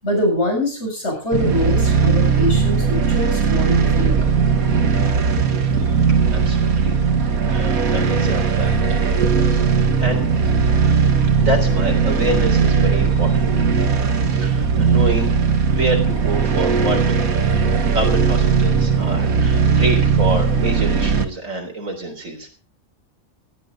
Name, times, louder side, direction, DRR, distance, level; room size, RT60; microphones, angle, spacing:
voice 1, 0.0-4.3, left 1 dB, 50° left, 0 dB, 7.6 m, -23 dB
sound 1, 1.3-21.2, right 5 dB, 85° right, 1.8 m, -18 dB
voice 2, 6.2-7.0 7.3-10.3 11.4-13.7 14.3-15.4 15.7-17.2 17.5-22.5, right 1 dB, 65° right, 3 dB, 4.0 m, -27 dB
17.5 x 12.0 x 3.8 m, 0.36 s
omnidirectional pair, 1.5 m